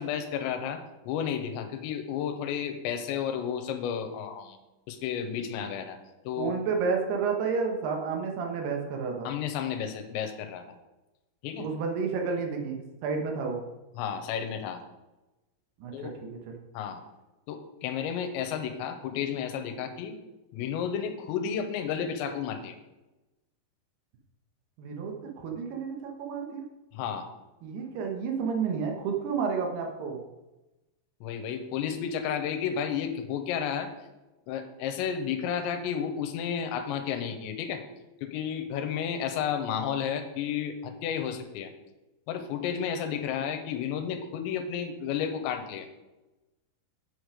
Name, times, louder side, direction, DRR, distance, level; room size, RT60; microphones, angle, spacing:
voice 1, 0.0-4.6 4.9-6.0 6.3-6.5 9.2-10.6 11.4-11.7 14.0-14.8 15.9-16.2 16.7-17.0 17.5-20.2 20.5-22.8 26.9-27.3 31.2-33.9 34.5-37.8 38.2-41.7 42.3-45.9, left 8 dB, 85° left, 6 dB, 3.1 m, -32 dB
voice 2, 6.4-9.3 11.6-13.6 15.8-16.1 16.5-16.6 24.8-26.6 27.6-30.2, right 5 dB, 70° right, 2 dB, 2.9 m, -31 dB
8.4 x 6.5 x 5.0 m, 1.0 s
omnidirectional pair, 5.2 m